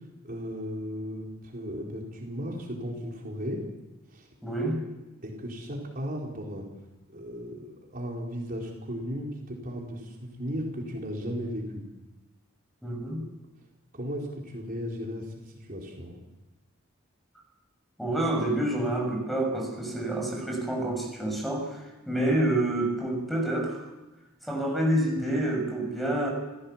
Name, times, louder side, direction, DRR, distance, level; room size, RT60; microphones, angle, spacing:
voice 1, 0.2-3.6 4.1-4.3 5.2-6.6 7.1-11.8 13.9-16.2, equal, 45° right, -1 dB, 4.4 m, -36 dB
voice 2, 4.4-4.8 12.8-13.2 18.0-21.8 22.0-23.8 24.4-26.3, right 1 dB, ahead, 1 dB, 6.9 m, -28 dB
29.0 x 16.5 x 7.4 m, 1.1 s
head